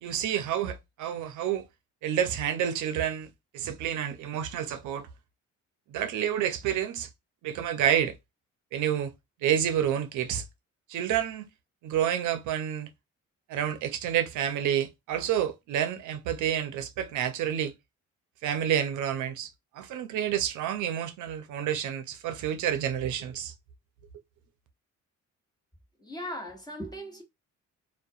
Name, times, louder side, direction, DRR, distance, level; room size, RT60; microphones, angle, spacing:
voice 1, 0.0-1.6 2.0-3.3 3.5-5.1 5.9-7.1 7.4-8.1 8.7-9.1 9.4-10.4 10.9-11.4 11.8-12.9 13.5-17.7 18.4-23.5, right 10 dB, 80° right, 0.5 m, -29 dB
voice 2, 26.0-27.2, equal, 15° left, 1.1 m, -38 dB
2.4 x 2.1 x 2.6 m
cardioid pair, 90°, 30 cm